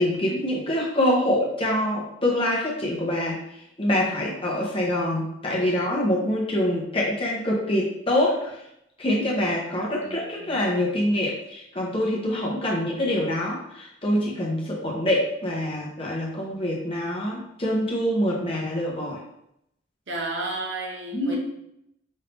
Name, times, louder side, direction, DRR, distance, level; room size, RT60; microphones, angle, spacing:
voice 1, 0.0-3.4 3.8-8.6 9.0-19.2 21.1-21.4, left 1 dB, 25° left, -3 dB, 1.0 m, -25 dB
voice 2, 5.6-6.0 10.0-10.6 20.1-21.4, right 2 dB, 65° right, 0 dB, 0.9 m, -33 dB
5.4 x 2.8 x 3.4 m, 0.79 s
head